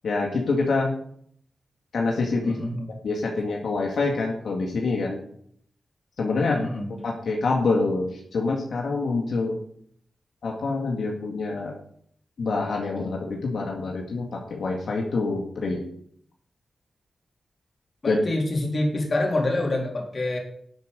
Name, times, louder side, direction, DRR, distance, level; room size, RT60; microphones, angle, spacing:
voice 1, 0.0-0.9 1.9-2.6 3.0-5.2 6.2-6.5 7.0-9.6 10.4-11.7 12.4-15.9 18.1-18.2, left 3 dB, 75° left, 0 dB, 2.0 m, -26 dB
voice 2, 2.4-2.9 6.4-6.9 18.0-20.4, left 2 dB, 45° left, 0 dB, 3.6 m, -26 dB
11.5 x 8.3 x 5.3 m, 0.65 s
cardioid pair, 85°, 0 cm